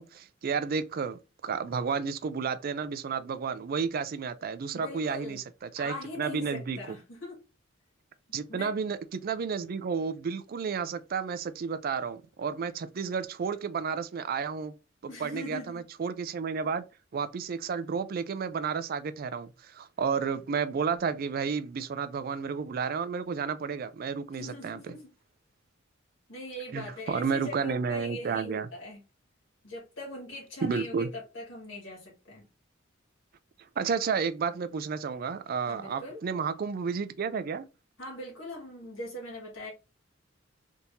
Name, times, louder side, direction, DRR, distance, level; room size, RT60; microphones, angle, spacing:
voice 1, 0.0-5.4 5.7-7.0 8.3-14.7 15.0-16.8 17.1-24.8 26.7-28.7 30.6-31.1 33.8-37.6, right 5 dB, 45° right, 0.4 m, -32 dB
voice 2, 4.7-5.4 5.8-7.4 8.5-8.7 15.1-15.8 24.4-25.1 26.3-29.0 29.6-32.4 35.7-36.2 38.0-39.7, left 1 dB, 70° left, 1.7 m, -41 dB
3.5 x 2.8 x 2.7 m
head